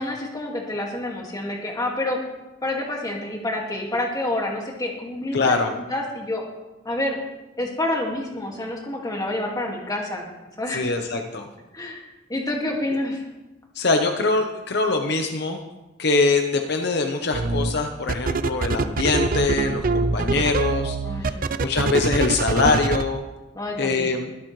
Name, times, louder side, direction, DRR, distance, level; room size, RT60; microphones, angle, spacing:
voice 1, 0.0-2.2 2.6-5.5 5.9-6.4 6.8-7.2 7.6-10.3 10.6-10.9 11.7-12.0 12.3-13.2 21.0-21.5 23.5-24.1, left 1 dB, 20° left, -1 dB, 2.1 m, -28 dB
voice 2, 5.3-5.7 10.7-11.5 13.7-15.6 16.0-21.0 21.2-23.2 23.8-24.3, left 3 dB, 60° left, 4 dB, 0.9 m, -23 dB
sound 1, 17.3-17.7 18.1-23.0, right 3 dB, 50° right, 0.5 m, -23 dB
23.0 x 8.2 x 3.3 m, 1.1 s
head